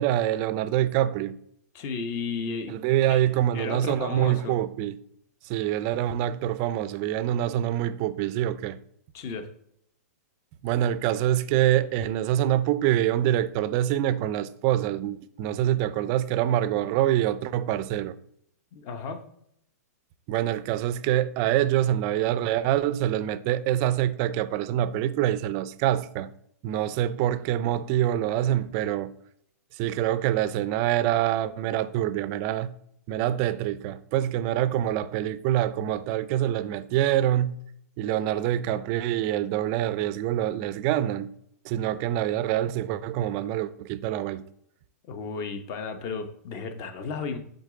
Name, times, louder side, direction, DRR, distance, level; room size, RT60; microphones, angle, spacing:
voice 1, 0.0-1.4 2.7-5.0 5.4-8.8 10.6-18.2 20.3-26.3 26.6-29.1 29.7-32.7 33.1-37.6 38.0-41.3 41.6-44.5, right 12 dB, 35° right, 0.4 m, -25 dB
voice 2, 1.7-2.8 3.1-3.2 3.5-4.6 9.1-9.5 18.7-19.2 45.1-47.4, left 5 dB, 35° left, 0.8 m, -33 dB
8.1 x 3.9 x 3.8 m
hypercardioid pair, 145°, 9 cm